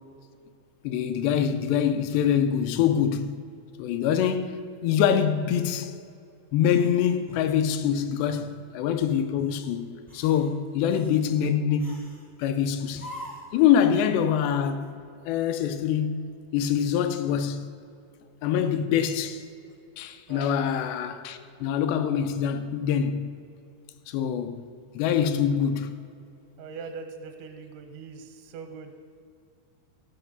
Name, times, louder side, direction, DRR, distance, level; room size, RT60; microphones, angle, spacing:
voice 1, 0.8-3.4 3.8-4.6 4.8-5.9 6.5-9.9 10.1-12.1 12.4-13.1 13.5-14.9 15.3-17.7 18.4-19.4 20.0-23.3 24.1-24.6 25.0-26.0, left 8 dB, 80° left, 2.6 m, -25 dB
sound 1, 6.7-7.9 8.3-8.5 9.0-9.6 10.0-10.5 10.9-11.2 11.8-12.3 12.9-13.6, equal, 10° left, 0.4 m, -44 dB
voice 2, 26.6-28.9, right 5 dB, 85° right, 3.1 m, -41 dB
13.5 x 5.4 x 6.7 m
omnidirectional pair, 5.2 m